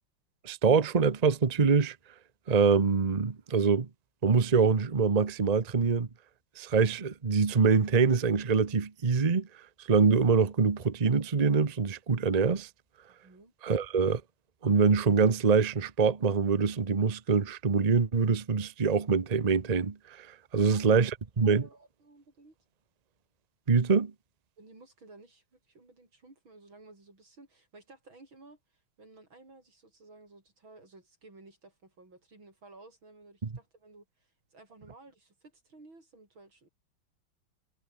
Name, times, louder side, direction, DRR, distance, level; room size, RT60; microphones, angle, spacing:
voice 1, 0.4-2.0 2.5-3.9 4.2-6.1 6.6-9.5 9.9-12.7 13.6-14.2 14.6-20.3 20.5-21.7 23.7-24.1, right 5 dB, 25° right, 0.9 m, -24 dB
voice 2, 13.2-13.5 20.5-20.9 21.4-22.6 24.6-36.7, right 2 dB, 80° right, 7.7 m, -55 dB
omnidirectional pair, 2.2 m